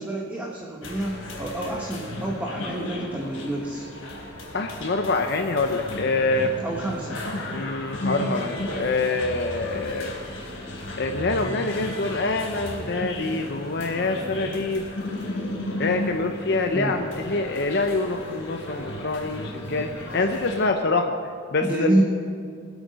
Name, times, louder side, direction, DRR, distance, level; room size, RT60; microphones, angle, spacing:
voice 1, 0.0-3.8 6.6-7.2 16.7-17.0 21.6-22.0, right 1 dB, 10° right, -3 dB, 1.2 m, -27 dB
sound 1, 0.8-20.7, left 1 dB, 80° left, 4.0 m, -34 dB
voice 2, 4.5-6.5 7.5-10.1 11.0-14.9 15.8-21.1 21.5-22.0, left 3 dB, 55° left, 5 dB, 0.7 m, -25 dB
21.5 x 8.1 x 5.2 m, 2.3 s
head